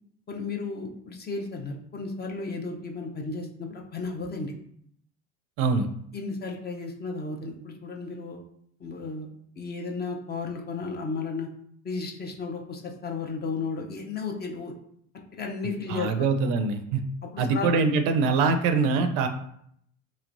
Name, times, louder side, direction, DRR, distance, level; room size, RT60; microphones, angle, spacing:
voice 1, 0.3-4.5 6.1-8.4 8.8-9.3 9.6-11.5 11.8-14.7 15.3-16.1 17.2-17.7, left 4 dB, 25° left, 2 dB, 0.5 m, -34 dB
voice 2, 15.9-17.0 17.4-19.3, right 4 dB, 65° right, 7 dB, 0.5 m, -23 dB
3.1 x 3.0 x 2.5 m, 0.69 s
hypercardioid pair, 80°, 37 cm